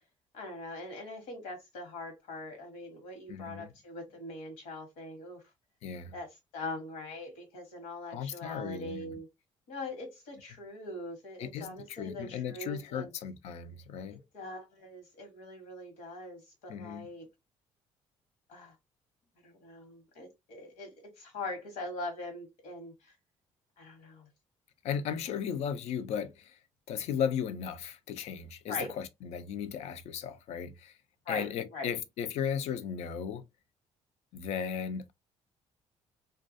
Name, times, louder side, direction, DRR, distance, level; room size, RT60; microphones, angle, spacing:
voice 1, 0.3-5.4 6.1-6.3 6.5-9.3 9.7-13.1 14.3-17.3 18.5-18.7 19.4-23.1 23.8-24.3 28.7-28.9 31.2-31.9, left 2 dB, 85° left, 1.1 m, -42 dB
voice 2, 3.3-3.7 5.8-6.1 8.1-9.1 11.4-14.2 16.7-17.1 24.8-26.6 26.9-31.0 31.3-33.4 34.3-35.1, left 8 dB, 70° left, 0.4 m, -36 dB
2.3 x 2.2 x 2.5 m
supercardioid pair, 80°, 12 cm